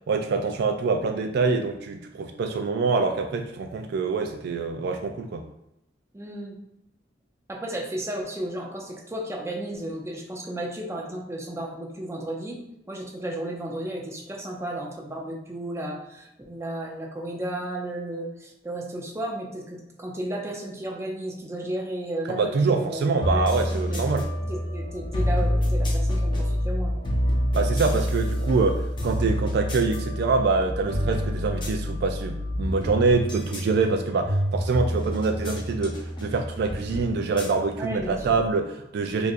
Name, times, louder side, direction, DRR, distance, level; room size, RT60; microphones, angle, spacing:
voice 1, 0.1-5.4 22.3-24.3 27.5-39.3, right 4 dB, 60° right, 5 dB, 0.3 m, -25 dB
voice 2, 6.1-6.6 7.5-12.6 12.9-24.0 24.5-26.9 37.7-38.4, right 1 dB, 15° right, 0 dB, 0.5 m, -33 dB
sound 1, 23.2-38.5, equal, 25° left, 0.7 m, -27 dB
4.5 x 2.5 x 2.5 m, 0.85 s
head